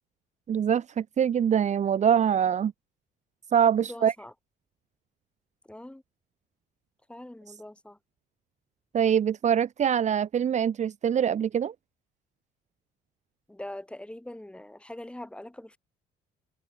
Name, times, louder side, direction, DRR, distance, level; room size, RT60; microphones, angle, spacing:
voice 1, 0.5-2.7 3.5-4.1 8.9-11.7, right 8 dB, 45° right, 1.6 m, -24 dB
voice 2, 3.9-4.3 5.7-6.0 7.1-8.0 13.5-15.8, left 1 dB, 5° left, 7.4 m, -42 dB
cardioid pair, 110°, 17 cm